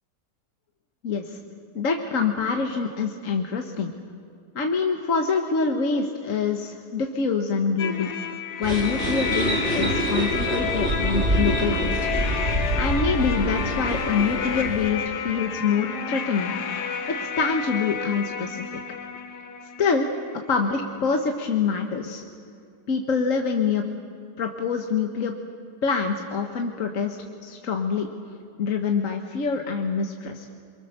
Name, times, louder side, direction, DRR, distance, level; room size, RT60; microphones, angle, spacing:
voice 1, 1.0-1.4 1.7-3.9 4.5-8.1 8.6-12.0 12.8-16.5 17.2-18.7 19.8-20.1 20.5-22.2 22.9-23.9 24.4-25.3 25.8-27.2 27.4-28.1 28.6-30.4, left 5 dB, 55° left, 3 dB, 1.5 m, -25 dB
sound 1, 7.8-20.5, left 7 dB, 85° left, 1.8 m, -30 dB
sound 2, 8.6-14.9, right 1 dB, 40° right, 2.7 m, -26 dB
27.5 x 23.5 x 6.6 m, 2.3 s
omnidirectional pair, 1.7 m